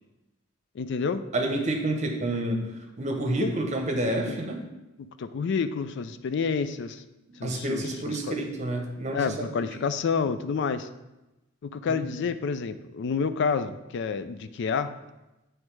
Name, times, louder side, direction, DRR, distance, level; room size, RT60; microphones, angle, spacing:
voice 1, 0.7-1.2 3.4-3.5 4.3-4.4 5.0-7.0 7.4-8.3 9.1-10.9 11.6-14.9, left 5 dB, 60° left, 11 dB, 0.4 m, -29 dB
voice 2, 1.3-4.6 7.3-9.8 11.9-12.0, right 1 dB, 35° right, 3 dB, 0.9 m, -29 dB
7.9 x 3.2 x 4.6 m, 0.99 s
head